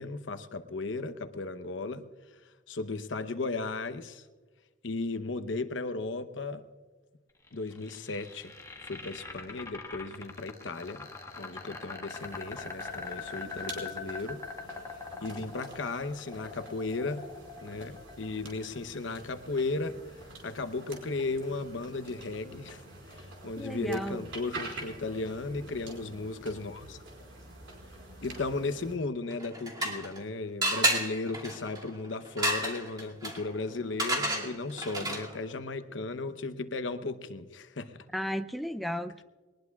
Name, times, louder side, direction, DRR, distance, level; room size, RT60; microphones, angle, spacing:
voice 1, 0.0-2.1 2.7-4.2 4.8-6.6 7.5-8.6 8.9-11.1 11.4-14.4 15.2-17.2 17.6-20.0 20.4-22.8 23.1-27.0 28.2-38.0, left 3 dB, 75° left, 11 dB, 0.9 m, -35 dB
sound 1, 7.5-19.5, left 4 dB, 15° left, 1.5 m, -42 dB
sound 2, 12.1-29.0, right 2 dB, 80° right, 4.9 m, -47 dB
voice 2, 23.6-24.2 38.1-39.2, equal, ahead, 8 dB, 0.4 m, -34 dB
sound 3, 29.3-30.2 30.6-35.4, right 1 dB, 20° right, 2.3 m, -31 dB
22.0 x 19.5 x 2.4 m, 1.4 s
head